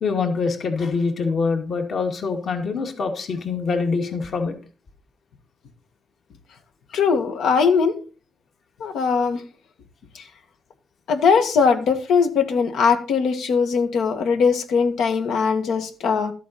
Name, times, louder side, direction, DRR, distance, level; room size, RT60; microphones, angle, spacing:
voice 1, 0.0-4.5, left 4 dB, 55° left, 4 dB, 2.3 m, -24 dB
voice 2, 6.9-7.9 8.8-9.4 10.1-10.2 11.1-16.3, left 5 dB, 80° left, 6 dB, 1.9 m, -20 dB
13.5 x 8.4 x 4.3 m, 0.36 s
cardioid pair, 140°, 0 cm